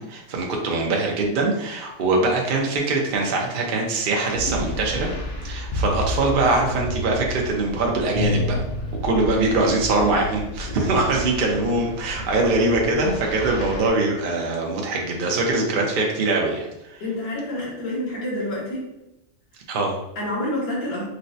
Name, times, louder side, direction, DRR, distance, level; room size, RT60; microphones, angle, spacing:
voice 1, 0.0-5.1 5.4-8.6 9.0-16.7 16.9-17.0 19.7-20.0, right 2 dB, 75° right, 0 dB, 0.4 m, -22 dB
sound 1, 4.3-13.9, left 2 dB, 55° left, 0.6 m, -30 dB
voice 2, 17.0-18.9 20.1-21.1, left 1 dB, 80° left, -8 dB, 1.6 m, -28 dB
4.3 x 2.0 x 2.7 m, 0.91 s
omnidirectional pair, 1.6 m